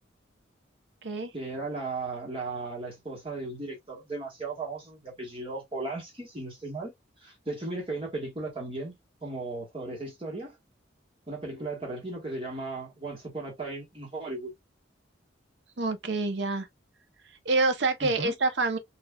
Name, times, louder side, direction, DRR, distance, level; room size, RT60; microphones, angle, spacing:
voice 1, 1.3-6.9 7.2-8.9 9.2-10.5 11.3-14.5 18.0-18.3, right 2 dB, 30° right, 1.4 m, -36 dB
voice 2, 15.8-16.7 17.4-18.8, right 3 dB, 65° right, 0.7 m, -27 dB
4.0 x 2.6 x 2.3 m
head